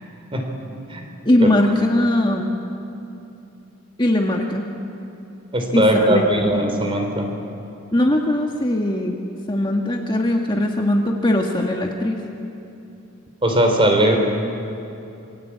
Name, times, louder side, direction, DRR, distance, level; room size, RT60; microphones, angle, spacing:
voice 1, 1.3-2.6 4.0-4.7 5.7-6.2 7.9-9.2 9.5-12.2, left 1 dB, 20° left, 1 dB, 1.7 m, -20 dB
voice 2, 5.5-7.3 13.4-14.2, right 1 dB, 25° right, 3 dB, 3.8 m, -19 dB
27.0 x 24.5 x 8.7 m, 2.8 s
head